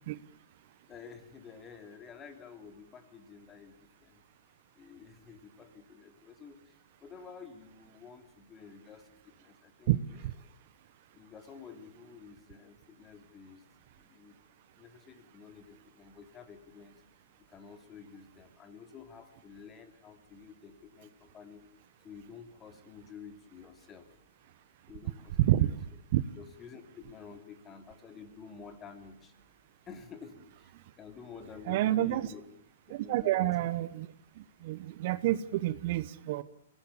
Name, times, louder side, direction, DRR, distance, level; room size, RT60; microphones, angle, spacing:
voice 1, 0.9-4.2 4.8-6.7 7.0-10.0 11.1-13.6 14.0-14.4 14.8-17.0 17.5-21.6 22.0-24.1 24.9-25.7 26.4-29.3 29.9-32.4 33.0-33.6, left 6 dB, 20° left, 7 dB, 3.1 m, -51 dB
voice 2, 25.4-25.7 26.1-26.2 31.7-32.3 32.9-34.1 34.6-36.4, right 14 dB, 50° right, 15 dB, 1.0 m, -28 dB
24.5 x 18.5 x 8.4 m, 0.71 s
hypercardioid pair, 130°, 0 cm